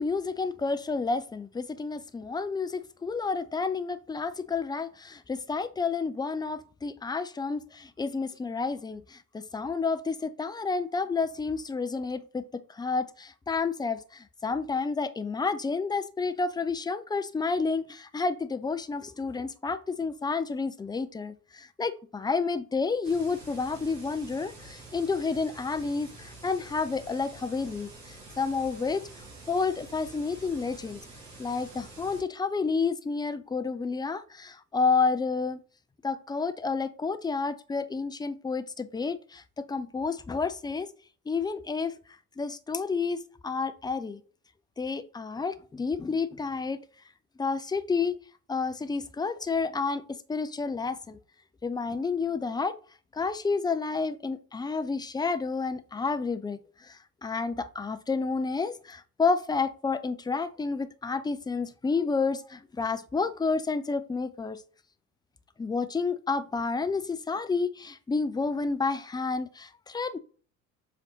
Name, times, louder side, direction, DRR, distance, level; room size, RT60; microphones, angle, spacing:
voice 1, 0.0-29.1 29.5-31.0 31.4-35.6 36.0-40.9 41.3-41.9 42.4-44.2 44.8-46.8 47.4-48.2 48.5-51.2 51.6-52.8 53.1-64.6 65.6-70.2, left 4 dB, 10° left, 11 dB, 0.4 m, -30 dB
sound 1, 23.0-32.2, right 2 dB, 90° right, 1.8 m, -48 dB
7.4 x 3.4 x 4.0 m, 0.40 s
hypercardioid pair, 60°, 49 cm